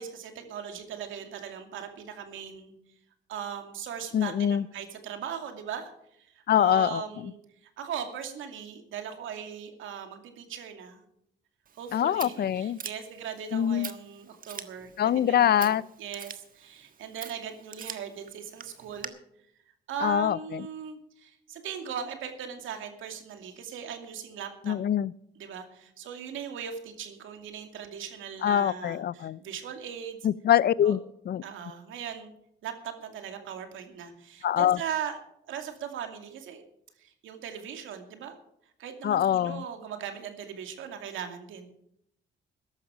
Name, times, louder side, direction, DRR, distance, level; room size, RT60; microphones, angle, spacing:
voice 1, 0.0-2.7 3.3-5.9 6.2-7.4 7.8-11.0 11.7-19.1 19.9-24.8 25.4-30.2 30.8-30.9 31.4-32.3 32.6-35.2 35.5-36.6 37.0-38.3 38.8-41.7, right 8 dB, 80° right, 6 dB, 2.5 m, -39 dB
voice 2, 4.1-4.7 6.5-7.3 11.9-12.8 13.5-13.9 15.0-15.8 20.0-20.7 24.7-25.1 28.4-29.4 30.2-31.0 31.3-31.4 34.4-34.8 39.0-39.6, left 10 dB, 55° left, 20 dB, 0.6 m, -24 dB
Scissors, 11.7-19.1, right 7 dB, 45° right, 1.4 m, -45 dB
14.5 x 11.5 x 5.1 m, 0.74 s
cardioid pair, 90°, 20 cm